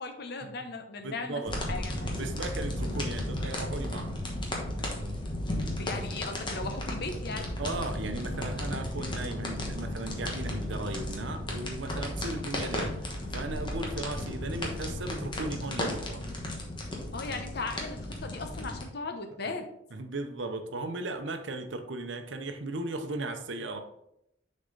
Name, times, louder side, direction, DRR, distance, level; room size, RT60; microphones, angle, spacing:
voice 1, 0.0-1.4 1.7-2.3 5.8-7.6 17.1-19.7, left 3 dB, 55° left, 6 dB, 0.9 m, -37 dB
voice 2, 1.0-1.6 2.1-4.3 7.6-16.2 19.9-23.8, right 2 dB, 70° right, 7 dB, 0.8 m, -37 dB
sound 1, 1.5-18.8, left 1 dB, 25° left, 1.1 m, -34 dB
6.6 x 4.3 x 3.9 m, 0.77 s
head